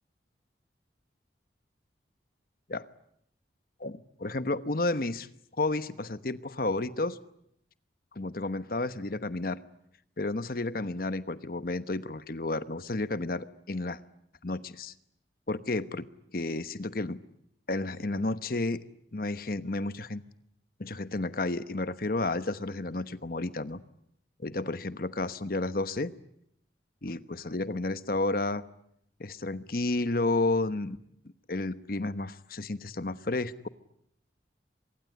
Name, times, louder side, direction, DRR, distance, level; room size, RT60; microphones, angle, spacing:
voice 1, 3.8-5.3 5.6-7.2 8.1-9.6 10.2-14.0 14.4-14.9 15.5-16.1 16.3-17.2 17.7-18.8 19.1-20.2 20.8-23.8 24.4-26.1 27.0-28.6 29.2-31.0 31.5-33.7, left 2 dB, 55° left, 13 dB, 1.1 m, -31 dB
24.5 x 23.0 x 9.6 m, 0.74 s
head